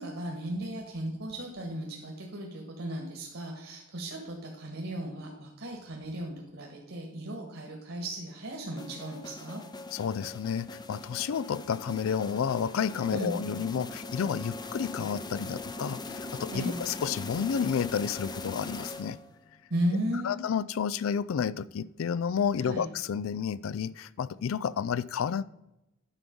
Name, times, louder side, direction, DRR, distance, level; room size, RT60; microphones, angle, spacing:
voice 1, 0.0-9.6 13.1-13.4 16.5-16.8 19.7-20.4 22.6-22.9, right 1 dB, 65° right, 1.7 m, -35 dB
sound 1, 8.8-19.4, left 2 dB, 20° left, 0.6 m, -41 dB
voice 2, 9.9-19.2 20.2-25.4, left 7 dB, 70° left, 0.4 m, -31 dB
9.8 x 6.0 x 5.2 m
head